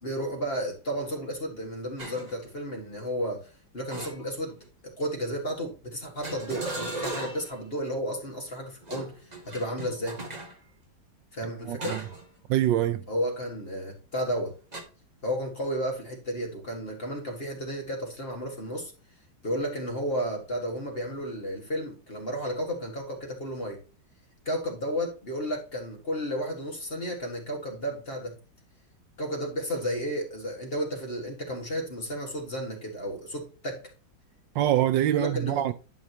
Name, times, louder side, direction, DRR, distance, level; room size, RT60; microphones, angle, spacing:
voice 1, 0.0-3.5 3.7-4.6 5.0-9.1 9.5-10.2 11.3-12.0 13.1-14.5 15.2-18.9 19.4-23.8 24.5-28.4 29.2-33.8 35.1-35.6, equal, 30° left, 2.2 m, -32 dB
sound 1, 2.0-2.4 3.9-4.7 6.2-7.6 8.8-10.6 11.8-12.3 12.7-12.9 14.7-14.8, right 2 dB, 25° right, 1.3 m, -37 dB
voice 2, 11.7-12.0 12.5-13.0 34.5-35.7, right 12 dB, 75° right, 1.2 m, -24 dB
11.5 x 5.1 x 3.0 m
omnidirectional pair, 2.1 m